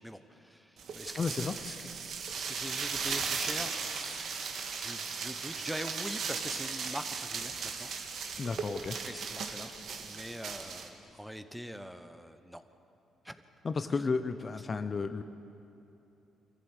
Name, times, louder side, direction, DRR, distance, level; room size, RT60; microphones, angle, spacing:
voice 1, 0.0-2.0 2.3-4.3 4.8-7.9 8.6-9.7 10.0-12.6 13.2-13.4, equal, 5° right, 9 dB, 1.1 m, -43 dB
sound 1, 0.8-10.9, right 5 dB, 65° right, 1.9 m, -37 dB
voice 2, 1.2-1.5 8.4-9.0 13.6-15.2, left 4 dB, 35° left, 10 dB, 0.8 m, -32 dB
24.0 x 14.5 x 8.3 m, 2.9 s
cardioid pair, 90°, 0 cm